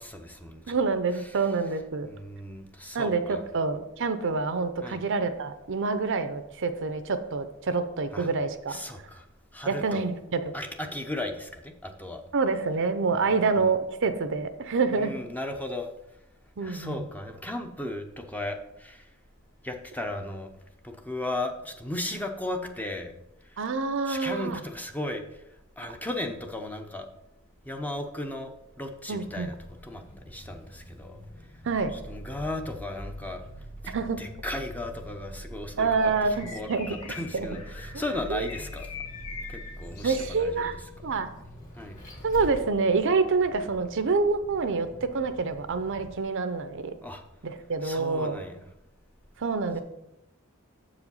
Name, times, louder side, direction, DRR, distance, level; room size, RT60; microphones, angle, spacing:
voice 1, 0.0-0.8 2.0-3.4 4.8-5.0 8.1-8.3 8.7-9.2 9.5-10.0 10.5-12.2 13.1-13.3 14.9-15.9 16.6-19.1 19.6-20.5 20.8-23.1 23.5-23.6 24.1-25.4 25.8-27.1 27.7-29.6 29.8-31.2 32.1-33.4 33.8-35.9 36.5-38.9 39.5-40.7 41.8-42.0 47.0-47.2 47.8-48.6, left 1 dB, 10° left, 4 dB, 0.6 m, -36 dB
voice 2, 0.7-2.1 2.9-8.8 9.7-10.5 12.3-15.1 16.6-17.1 23.6-24.6 29.1-29.5 31.6-31.9 33.9-34.2 35.8-37.6 37.9-38.0 38.3-38.5 40.0-40.7 41.0-41.3 42.2-46.9 47.4-48.4 49.4-49.8, right 4 dB, 60° right, 10 dB, 0.6 m, -27 dB
Vehicle, 29.3-46.2, equal, 35° left, 2.2 m, -44 dB
Bird, 35.9-40.8, left 5 dB, 85° left, 1.4 m, -44 dB
7.2 x 4.9 x 5.4 m, 0.86 s
head